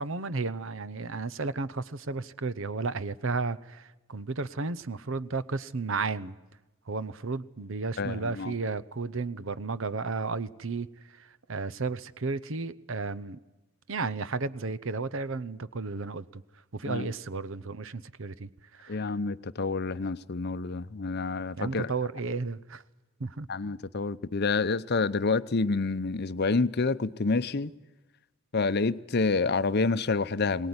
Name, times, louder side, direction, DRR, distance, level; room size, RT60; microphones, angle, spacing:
voice 1, 0.0-6.3 6.9-13.4 13.9-16.4 16.7-19.1 21.6-22.8 23.2-23.5, right 4 dB, 60° right, 0.8 m, -33 dB
voice 2, 8.0-8.5 16.9-17.1 18.9-21.9 23.5-27.7 28.5-30.7, left 3 dB, 50° left, 0.7 m, -28 dB
23.0 x 18.5 x 9.6 m
head